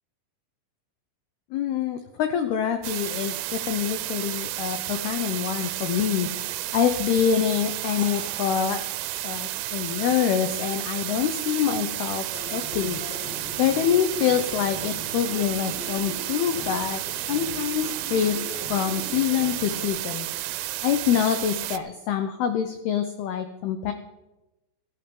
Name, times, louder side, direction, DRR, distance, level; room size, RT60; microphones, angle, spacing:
voice 1, 1.5-8.8 9.2-13.3 13.6-17.0 17.3-18.4 18.7-20.3 20.8-23.9, left 9 dB, 90° left, 8 dB, 2.2 m, -26 dB
sound 1, 2.8-21.8, right 17 dB, 85° right, 3.0 m, -32 dB
Crash cymbal, 8.0-9.9, right 2 dB, 20° right, 2.6 m, -45 dB
sound 2, 12.3-19.9, left 2 dB, 65° left, 4.9 m, -40 dB
16.5 x 14.0 x 3.8 m, 0.98 s
omnidirectional pair, 5.7 m